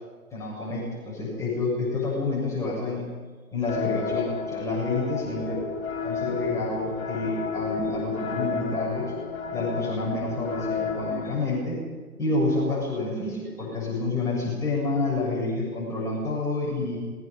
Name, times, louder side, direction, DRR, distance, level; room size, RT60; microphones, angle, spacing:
voice 1, 0.3-3.0 3.5-5.6 6.0-9.1 9.5-11.8 12.2-17.0, left 2 dB, 5° left, -6 dB, 7.3 m, -28 dB
sound 1, 3.7-11.3, left 6 dB, 45° left, 4.5 m, -32 dB
27.5 x 22.0 x 5.4 m, 1.5 s
figure-of-eight pair, 130°, 44 cm